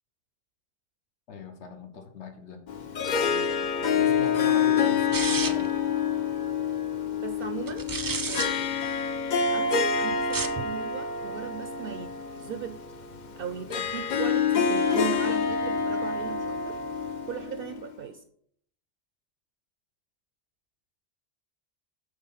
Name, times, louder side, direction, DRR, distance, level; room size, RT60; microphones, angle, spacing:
voice 1, 1.3-2.6 4.0-5.8, left 4 dB, 85° left, 5 dB, 1.3 m, -40 dB
Harp, 2.7-17.9, left 6 dB, 50° left, 0.6 m, -27 dB
voice 2, 3.2-4.0 7.2-7.9 8.2-8.7 9.5-12.1 12.4-12.8 13.4-16.8 17.3-18.2, right 8 dB, 65° right, 8 dB, 0.7 m, -38 dB
sound 1, 5.1-5.8 7.7-8.5 10.2-10.6, right 4 dB, 35° right, 0.3 m, -31 dB
8.7 x 3.9 x 5.6 m, 0.65 s
omnidirectional pair, 1.1 m